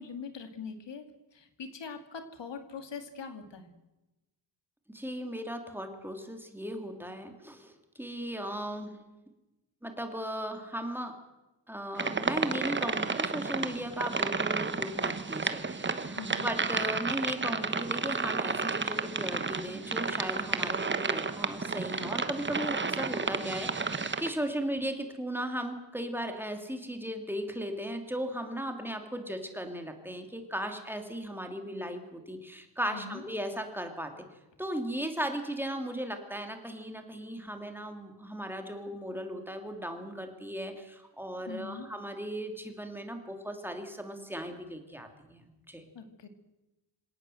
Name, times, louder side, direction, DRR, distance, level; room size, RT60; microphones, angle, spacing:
voice 1, 0.0-3.7 16.1-16.5 32.9-33.2 41.5-41.9 45.9-46.3, left 5 dB, 70° left, 7 dB, 2.6 m, -42 dB
voice 2, 4.9-8.9 9.8-11.1 11.7-34.1 34.6-45.9, equal, 5° right, 5 dB, 2.7 m, -37 dB
sound 1, 11.9-24.3, right 4 dB, 25° right, 1.2 m, -32 dB
26.5 x 18.0 x 7.8 m, 1.0 s
wide cardioid pair, 160°, 44 cm